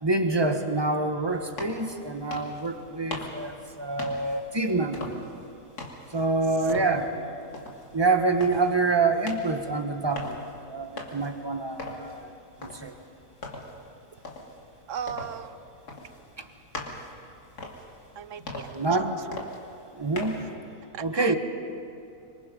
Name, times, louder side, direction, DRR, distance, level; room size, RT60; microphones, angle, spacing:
voice 1, 0.0-5.2 6.1-7.2 7.9-10.3 10.7-12.3 12.6-12.9 16.4-16.5 18.7-19.2 20.0-20.4 21.0-21.4, right 3 dB, 15° right, 6 dB, 1.3 m, -26 dB
sound 1, 1.3-20.5, left 2 dB, 80° left, 3.0 m, -42 dB
voice 2, 14.9-15.5 18.2-18.9 19.3-19.4 20.9-21.4, right 8 dB, 60° right, 13 dB, 1.0 m, -37 dB
25.5 x 25.5 x 5.5 m, 2.6 s
omnidirectional pair, 1.6 m